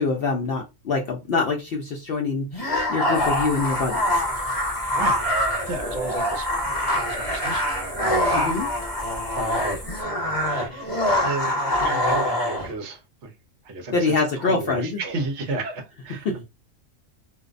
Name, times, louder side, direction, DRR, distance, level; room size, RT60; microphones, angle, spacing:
voice 1, 0.0-4.3 8.3-8.7 13.9-15.0 16.3-16.4, left 3 dB, 65° left, 0.6 m, -25 dB
sound 1, 2.5-12.7, left 1 dB, 35° left, 1.3 m, -24 dB
sound 2, 3.1-10.0, equal, 15° right, 0.5 m, -38 dB
voice 2, 4.9-8.2 9.1-13.3 13.6-16.4, right 3 dB, 60° right, 0.9 m, -34 dB
2.5 x 2.0 x 2.4 m
omnidirectional pair, 1.4 m